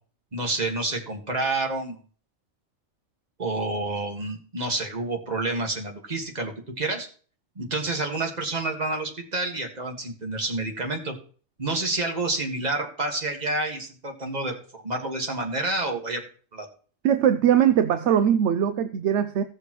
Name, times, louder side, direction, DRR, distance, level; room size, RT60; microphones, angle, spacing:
voice 1, 0.3-2.0 3.4-7.1 7.6-11.1 11.6-14.6 14.8-16.2 16.5-16.7, right 2 dB, 35° right, 3 dB, 1.8 m, -29 dB
voice 2, 17.0-19.4, right 9 dB, 70° right, 11 dB, 0.9 m, -21 dB
16.5 x 6.7 x 3.0 m, 0.42 s
omnidirectional pair, 1.3 m